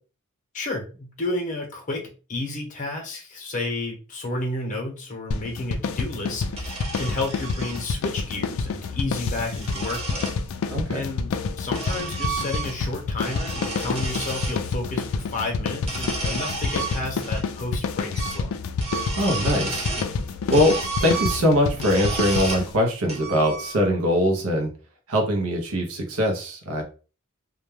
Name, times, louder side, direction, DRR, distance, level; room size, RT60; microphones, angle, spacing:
voice 1, 0.5-2.0 2.3-10.3 10.9-18.5, left 2 dB, 35° left, 1 dB, 0.7 m, -31 dB
sound 1, 5.3-22.8, left 4 dB, 65° left, 0.3 m, -29 dB
sound 2, 6.5-7.8 9.0-10.4 11.3-12.9 13.2-14.6 15.8-17.4 17.7-17.8 18.1-18.5 18.7-20.1 20.5-22.7 23.1-24.0, right 3 dB, 30° right, 0.6 m, -32 dB
voice 2, 10.7-11.0 19.2-19.9 20.5-24.7 25.1-26.8, equal, 75° right, 1 dB, 0.6 m, -22 dB
2.2 x 2.1 x 3.0 m, 0.36 s
head